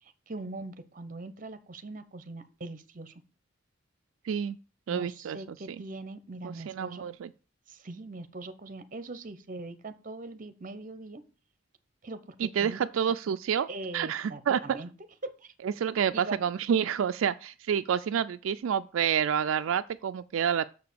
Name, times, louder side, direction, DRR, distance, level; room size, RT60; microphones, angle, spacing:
voice 1, 0.0-3.1 4.9-7.1 7.7-11.2 12.0-12.8 13.7-14.9 15.2-15.5 16.1-16.4, right 2 dB, 40° right, 0.8 m, -41 dB
voice 2, 4.2-4.6 4.9-5.8 6.4-7.3 12.4-13.7 13.9-14.8 15.6-20.7, right 8 dB, 80° right, 0.3 m, -29 dB
6.7 x 4.9 x 6.8 m
head